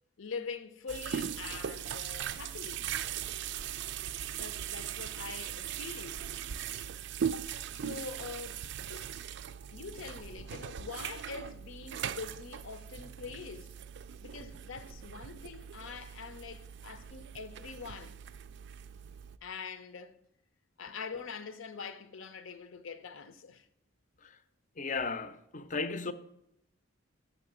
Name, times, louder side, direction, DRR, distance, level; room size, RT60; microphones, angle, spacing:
voice 1, 0.2-2.9 4.4-6.2 7.7-9.2 9.7-13.7 14.2-18.2 19.4-20.2 20.8-23.7, left 5 dB, 75° left, 0.7 m, -44 dB
sound 1, 0.9-19.4, right 9 dB, 55° right, 0.3 m, -40 dB
voice 2, 24.8-26.1, left 4 dB, 40° left, 0.5 m, -35 dB
6.9 x 6.5 x 7.4 m
head